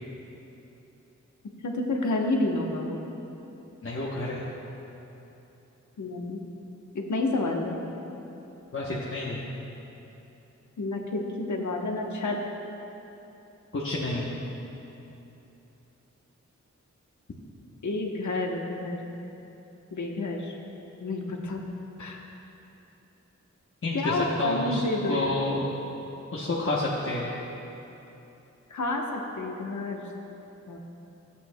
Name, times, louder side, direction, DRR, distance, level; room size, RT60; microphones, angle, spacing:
voice 1, 1.6-3.0 6.0-6.5 6.9-7.8 10.8-12.4 17.8-19.0 19.9-20.5 21.0-21.6 22.0-22.2 23.9-25.4 28.7-30.0 30.7-30.8, left 2 dB, 85° left, 1 dB, 1.0 m, -29 dB
voice 2, 3.8-4.4 8.7-9.4 13.7-14.3 23.8-25.7 26.3-27.3, left 2 dB, 45° left, -6 dB, 0.9 m, -29 dB
15.0 x 8.3 x 2.2 m, 3.0 s
wide cardioid pair, 100°, 29 cm